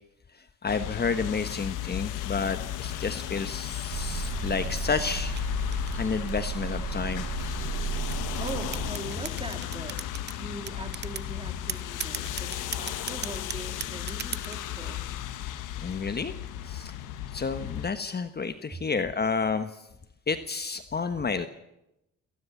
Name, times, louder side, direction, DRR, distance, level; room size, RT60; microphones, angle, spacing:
voice 1, 0.6-5.4 5.9-7.3 15.8-16.3 16.6-16.9 17.3-19.7 20.3-21.5, left 5 dB, 35° left, 10 dB, 1.3 m, -30 dB
sound 1, 0.7-17.9, left 11 dB, 90° left, 1.6 m, -35 dB
sound 2, 3.9-8.9, right 7 dB, 70° right, 2.6 m, -34 dB
sound 3, 4.1-6.5 7.2-10.4 10.7-11.3 11.7-14.7, right 7 dB, 35° right, 1.0 m, -37 dB
voice 2, 8.4-10.0 10.3-15.1, right 2 dB, 20° right, 6 dB, 3.5 m, -41 dB
27.0 x 18.5 x 7.3 m, 0.88 s
cardioid pair, 90°, 30 cm